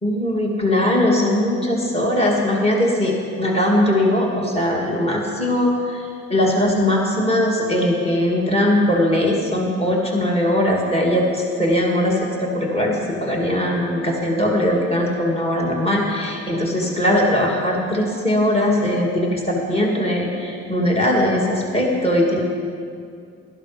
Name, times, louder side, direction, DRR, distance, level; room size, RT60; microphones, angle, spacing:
voice 1, 0.0-6.0 6.3-22.4, left 1 dB, 20° left, -2 dB, 2.4 m, -20 dB
12.5 x 11.0 x 5.1 m, 2.3 s
cardioid pair, 90°, 30 cm